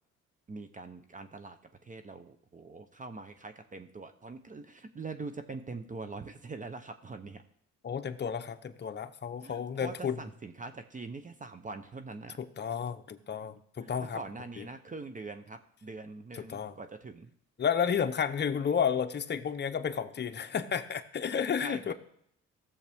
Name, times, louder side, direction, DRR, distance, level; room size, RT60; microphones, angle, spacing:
voice 1, 0.5-7.4 9.4-12.4 13.8-17.3 21.6-21.9, right 3 dB, 25° right, 8 dB, 0.7 m, -43 dB
voice 2, 7.8-10.2 12.4-14.2 14.6-14.7 16.3-16.7 17.6-21.9, left 7 dB, 35° left, 8 dB, 0.8 m, -32 dB
16.0 x 7.1 x 3.5 m, 0.69 s
cardioid pair, 90°, 30 cm